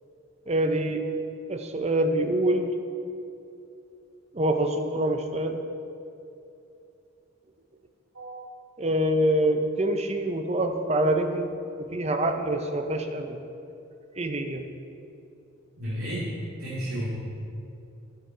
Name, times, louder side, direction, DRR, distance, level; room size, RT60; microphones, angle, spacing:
voice 1, 0.5-1.0 1.5-2.7 4.3-5.6 8.8-11.5 11.9-13.4 14.2-14.7, right 1 dB, 30° right, 5 dB, 0.7 m, -25 dB
voice 2, 15.8-16.3 16.6-17.1, equal, 80° right, -9 dB, 2.4 m, -32 dB
11.5 x 9.8 x 4.5 m, 2.7 s
head